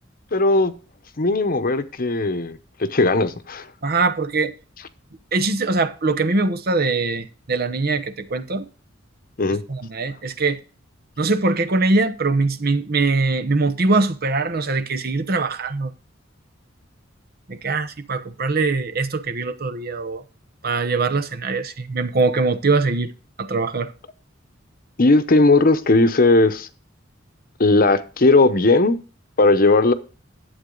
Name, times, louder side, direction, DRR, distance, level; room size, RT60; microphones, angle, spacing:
voice 1, 0.3-0.7 1.2-3.7 9.4-9.6 25.0-26.7 27.6-29.0 29.4-29.9, left 2 dB, 45° left, 0.9 m, -17 dB
voice 2, 3.8-4.5 5.3-8.6 9.7-10.6 11.2-15.9 17.5-20.2 20.6-23.1 23.4-23.9, right 3 dB, 50° right, 0.9 m, -22 dB
11.5 x 8.0 x 3.8 m
head